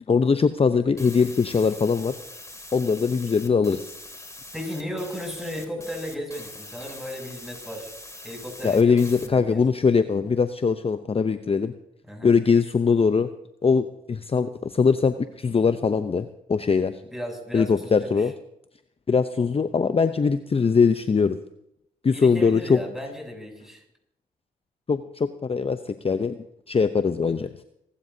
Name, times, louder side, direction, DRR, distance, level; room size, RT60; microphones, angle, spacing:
voice 1, 0.1-2.1 2.7-4.0 8.6-11.7 12.2-13.3 13.6-17.0 17.5-18.3 19.1-21.4 22.0-22.8 24.9-26.4 26.7-27.5, left 5 dB, 30° left, 11 dB, 0.7 m, -21 dB
sound 1, 1.0-9.3, left 2 dB, 15° left, 2.7 m, -43 dB
voice 2, 4.5-7.9 8.2-9.6 12.0-12.3 17.1-18.3 22.1-23.8, equal, ahead, 1 dB, 7.7 m, -35 dB
27.0 x 12.5 x 2.8 m, 0.81 s
hypercardioid pair, 45°, 18 cm